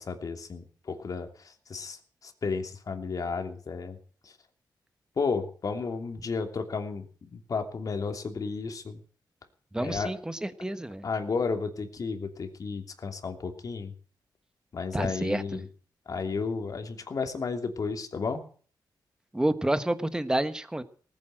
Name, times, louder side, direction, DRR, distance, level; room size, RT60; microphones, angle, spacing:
voice 1, 0.0-4.0 4.2-4.3 5.2-7.1 7.3-9.0 9.8-10.1 11.0-13.9 14.7-15.7 16.1-18.4, left 4 dB, 50° left, 5 dB, 2.9 m, -33 dB
voice 2, 9.7-11.0 14.9-15.6 19.3-20.8, right 1 dB, 10° right, 11 dB, 1.4 m, -29 dB
19.0 x 9.6 x 7.8 m, 0.43 s
wide cardioid pair, 110°, 8 cm